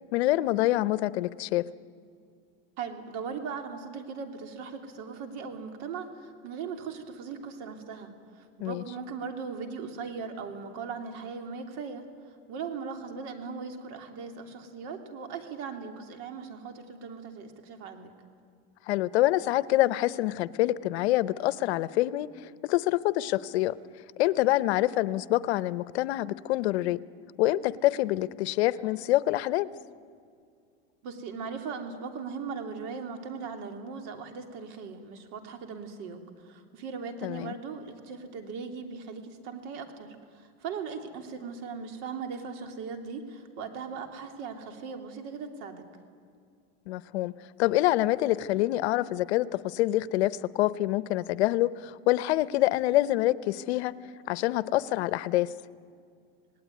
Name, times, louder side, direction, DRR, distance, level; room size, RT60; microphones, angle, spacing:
voice 1, 0.1-1.6 8.6-8.8 18.9-23.7 24.2-27.0 27.4-29.7 37.2-37.5 46.9-47.3 47.6-53.9 54.3-55.5, left 16 dB, 85° left, 16 dB, 0.9 m, -26 dB
voice 2, 2.8-12.0 12.5-18.1 31.0-45.9, right 5 dB, 55° right, 5 dB, 3.1 m, -39 dB
27.0 x 19.0 x 9.5 m, 2.3 s
supercardioid pair, 145°, 32 cm